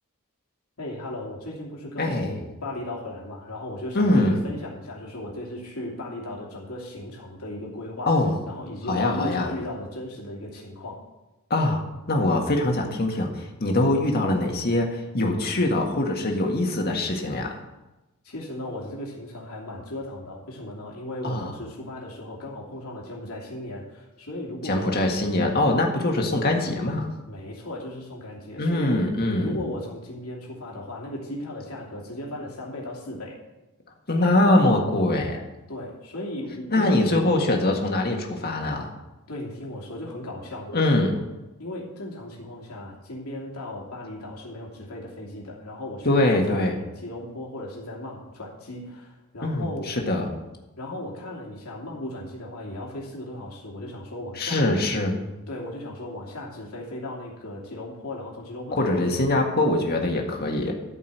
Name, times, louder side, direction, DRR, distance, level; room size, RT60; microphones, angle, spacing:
voice 1, 0.8-8.1 8.5-11.0 18.2-25.0 27.3-28.9 29.4-33.4 35.7-37.0 39.3-41.2 41.6-49.9 50.8-54.6 55.5-59.2, left 1 dB, 75° left, -3 dB, 2.9 m, -36 dB
voice 2, 2.0-2.4 3.9-4.4 8.1-8.3 8.9-9.5 11.5-11.8 12.1-17.5 21.2-21.5 24.7-27.1 28.6-29.6 34.1-35.4 36.7-38.9 40.7-41.1 46.0-46.8 49.4-50.3 54.4-55.2 58.7-60.7, left 1 dB, 45° left, 2 dB, 1.8 m, -23 dB
13.5 x 5.4 x 8.0 m, 1.0 s
head